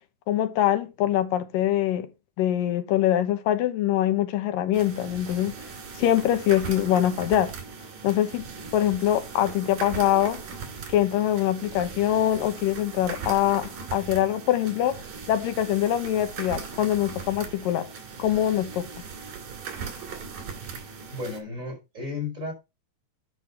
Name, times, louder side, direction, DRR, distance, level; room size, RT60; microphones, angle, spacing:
voice 1, 0.3-2.1 2.4-5.5 6.0-7.5 8.0-8.5 8.7-10.4 10.9-15.0 15.3-17.9 18.2-18.9, left 12 dB, 85° left, 2.8 m, -24 dB
sound 1, 4.7-21.4, right 6 dB, 80° right, 3.8 m, -39 dB
voice 2, 21.1-22.5, left 3 dB, 20° right, 4.8 m, -33 dB
11.5 x 4.8 x 5.7 m
omnidirectional pair, 3.8 m